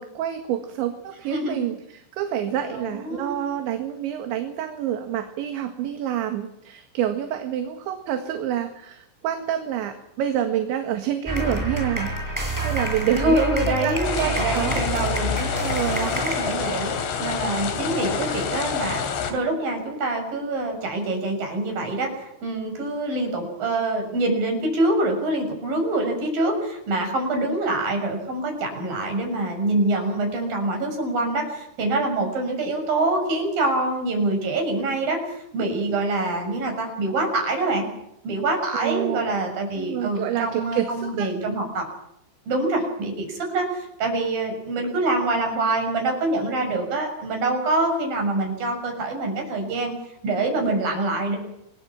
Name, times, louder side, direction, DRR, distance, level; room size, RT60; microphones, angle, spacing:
voice 1, 0.0-14.8 15.4-16.1 38.7-39.3 39.8-41.3, right 10 dB, 70° right, 6 dB, 3.9 m, -28 dB
voice 2, 1.3-1.7 2.7-3.3 13.1-15.4 16.0-16.9 17.2-19.0 19.3-37.9 38.2-41.9 42.5-49.9 50.2-51.4, right 2 dB, 45° right, 3 dB, 8.3 m, -25 dB
sound 1, 11.3-17.2, right 1 dB, 5° right, 7.0 m, -28 dB
sound 2, 14.0-19.3, left 6 dB, 80° left, 5.6 m, -28 dB
28.0 x 22.0 x 6.0 m, 0.79 s
omnidirectional pair, 5.7 m